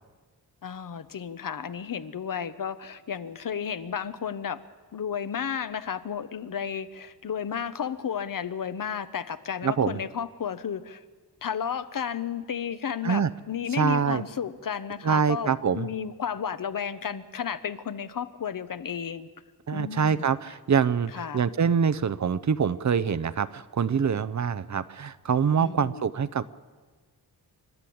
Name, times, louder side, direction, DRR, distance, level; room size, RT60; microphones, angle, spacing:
voice 1, 0.6-4.6 4.9-11.0 11.4-19.3 19.7-20.3 21.1-21.4 25.6-26.1, left 7 dB, 55° left, 13 dB, 0.9 m, -33 dB
voice 2, 9.6-10.0 13.0-13.3 13.8-14.2 15.0-15.9 19.7-26.4, right 6 dB, 50° right, 13 dB, 0.6 m, -25 dB
28.5 x 12.5 x 8.6 m, 1.4 s
wide cardioid pair, 155°, 38 cm